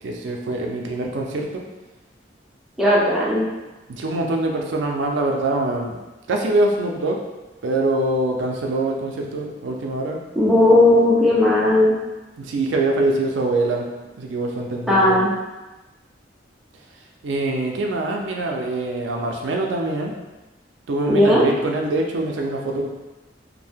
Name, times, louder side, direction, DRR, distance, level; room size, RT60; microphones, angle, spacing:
voice 1, 0.0-1.6 3.9-6.0 6.3-7.2 7.6-10.2 12.4-13.9 14.1-15.2 17.2-20.1 20.9-22.9, right 2 dB, 85° right, 1 dB, 0.4 m, -24 dB
voice 2, 2.8-3.5 10.4-11.9 14.9-15.3 21.1-21.4, left 1 dB, ahead, -7 dB, 0.5 m, -16 dB
2.6 x 2.1 x 3.4 m, 1.1 s
head